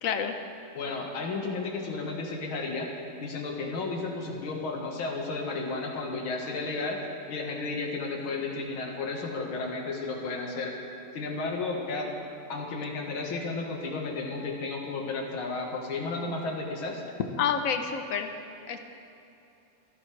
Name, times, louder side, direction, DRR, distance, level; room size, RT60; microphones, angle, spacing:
voice 1, 0.0-0.3 17.4-18.3 18.7-18.8, left 7 dB, 50° left, 6 dB, 1.1 m, -28 dB
voice 2, 0.7-2.9 3.2-7.0 7.3-10.7 11.1-12.1 12.5-17.0, left 3 dB, 70° left, 0 dB, 2.5 m, -33 dB
28.0 x 11.0 x 3.4 m, 2.8 s
omnidirectional pair, 2.4 m